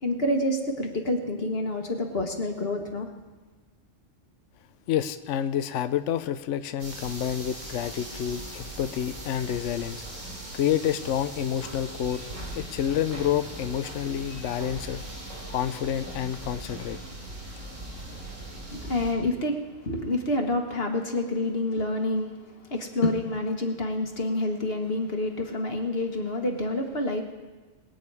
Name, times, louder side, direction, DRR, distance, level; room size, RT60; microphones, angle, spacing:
voice 1, 0.0-3.1 18.7-22.3 22.7-27.2, left 1 dB, 50° left, 3 dB, 1.6 m, -28 dB
voice 2, 4.9-10.0 10.5-12.2 12.5-15.0 15.5-17.0, left 10 dB, 75° left, 11 dB, 1.0 m, -28 dB
sound 1, 6.8-19.1, right 1 dB, 85° right, 3.5 m, -39 dB
21.0 x 9.0 x 4.8 m, 1.3 s
omnidirectional pair, 1.3 m